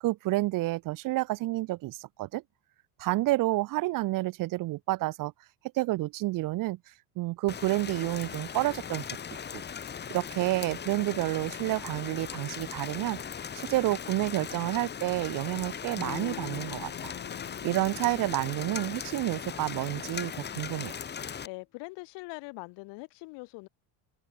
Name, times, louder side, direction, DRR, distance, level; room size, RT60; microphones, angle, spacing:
voice 1, 0.0-2.4 3.0-5.3 5.7-6.8 7.2-9.1 9.5-9.6 10.1-13.2 13.5-17.1 17.6-20.9, right 18 dB, 45° right, 1.2 m, -29 dB
Rain, 7.5-21.5, left 7 dB, 25° left, 3.6 m, -39 dB
Electric guitar / Strum, 15.9-21.1, left 13 dB, 40° left, 4.9 m, -45 dB
voice 2, 21.4-23.7, left 27 dB, 65° left, 2.4 m, -42 dB
open air
cardioid pair, 170°, 44 cm